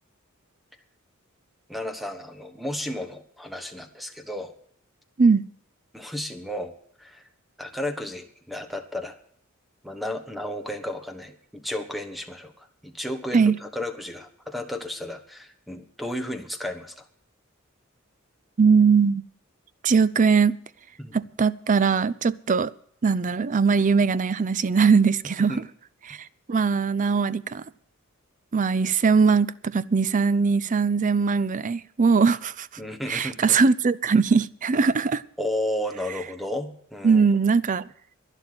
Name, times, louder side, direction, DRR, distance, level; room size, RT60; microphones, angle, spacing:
voice 1, 1.7-4.5 5.9-7.3 7.6-9.1 9.8-17.0 21.0-21.1 25.5-25.6 32.8-33.6 35.4-37.3, left 1 dB, ahead, 1.3 m, -33 dB
voice 2, 18.6-19.2 19.8-20.6 21.1-22.7 23.0-25.6 26.1-26.2 26.5-27.6 28.5-32.7 33.1-35.2 37.0-37.9, right 5 dB, 35° right, 0.5 m, -20 dB
11.5 x 11.0 x 7.8 m
head